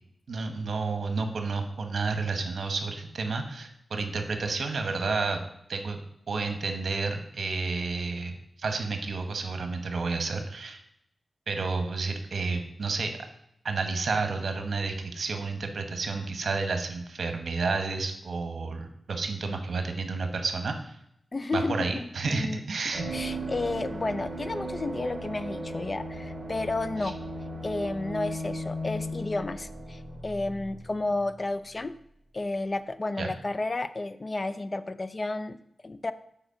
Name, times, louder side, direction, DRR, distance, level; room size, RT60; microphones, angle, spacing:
voice 1, 0.3-5.4 5.7-10.8 11.5-13.2 13.6-21.0 21.5-23.1 27.0-27.1 33.2-33.3, right 4 dB, 70° right, 6 dB, 1.0 m, -31 dB
voice 2, 21.3-22.6 23.1-27.2 27.6-32.0 32.3-36.1, left 2 dB, 30° left, 13 dB, 0.4 m, -32 dB
sound 1, 22.9-31.4 31.7-31.8, right 1 dB, 30° right, 2.3 m, -37 dB
7.9 x 4.2 x 5.6 m, 0.74 s
wide cardioid pair, 135°, 0 cm